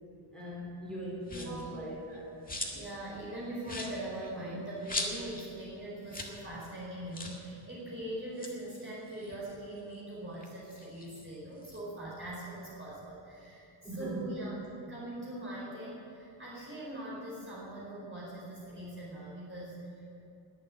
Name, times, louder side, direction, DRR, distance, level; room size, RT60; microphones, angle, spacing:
voice 1, 0.3-2.4 13.8-14.4, right 1 dB, ahead, -7 dB, 4.9 m, -40 dB
sound 1, 1.2-1.7 2.1-2.9 3.2-3.3 3.6-5.5 5.8-5.9 6.1-6.4 6.6-6.7 7.1-7.4 8.2-9.9 10.3-11.8, left 2 dB, 15° left, 1.9 m, -40 dB
voice 2, 1.3-1.7 2.7-14.6 14.9-20.2, right 1 dB, 25° right, -7 dB, 4.4 m, -42 dB
21.5 x 7.5 x 8.7 m, 2.7 s
wide cardioid pair, 170°, 49 cm